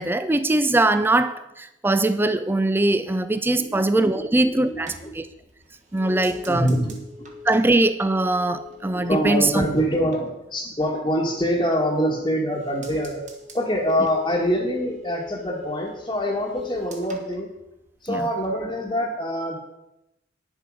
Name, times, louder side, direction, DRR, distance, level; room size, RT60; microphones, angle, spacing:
voice 1, 0.0-5.3 5.9-6.7 7.4-9.7 18.1-18.3, right 2 dB, 10° right, 11 dB, 0.4 m, -21 dB
voice 2, 4.1-4.8 6.5-7.0 8.9-13.2 13.5-17.5 18.0-19.6, equal, 20° left, -5 dB, 1.3 m, -25 dB
sound 1, 4.5-11.1 11.5-12.2 12.5-18.2 18.5-19.0, left 3 dB, 40° right, 1.5 m, -42 dB
9.9 x 7.2 x 6.2 m, 0.90 s
head